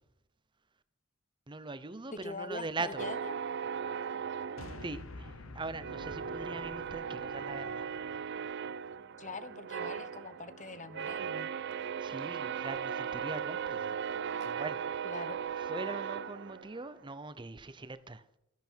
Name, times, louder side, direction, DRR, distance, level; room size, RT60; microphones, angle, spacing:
voice 1, 1.5-3.1 4.8-7.9 12.0-14.0 14.4-15.2 15.6-18.2, right 3 dB, 25° right, 0.7 m, -41 dB
voice 2, 2.1-3.3 9.2-11.5 15.0-15.4, left 3 dB, 35° left, 0.9 m, -43 dB
sound 1, 3.0-5.4 5.8-17.0, right 7 dB, 55° right, 0.5 m, -38 dB
sound 2, 4.6-9.0, left 2 dB, 80° left, 1.1 m, -49 dB
13.0 x 10.5 x 4.6 m
head